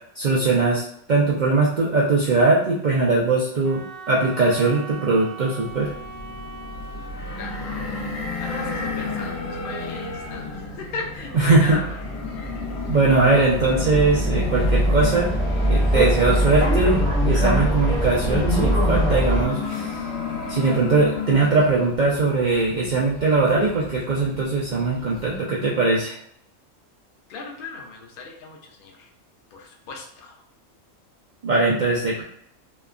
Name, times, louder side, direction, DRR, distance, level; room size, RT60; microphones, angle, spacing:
voice 1, 0.2-0.8 1.1-5.9 11.3-11.8 12.9-15.3 15.6-19.9 20.5-26.2 31.4-32.2, right 3 dB, 85° right, -6 dB, 0.4 m, -20 dB
Wind instrument woodwind instrument, 3.6-7.9, right 5 dB, 60° right, 1.0 m, -40 dB
sound 1, 5.6-25.4, left 4 dB, 80° left, 1.1 m, -33 dB
voice 2, 7.4-12.0 27.3-29.1 29.5-30.4, left 3 dB, 55° left, 1 dB, 0.6 m, -36 dB
sound 2, 11.3-19.4, equal, 15° left, 0.5 m, -22 dB
3.0 x 2.1 x 2.4 m, 0.71 s
omnidirectional pair, 1.4 m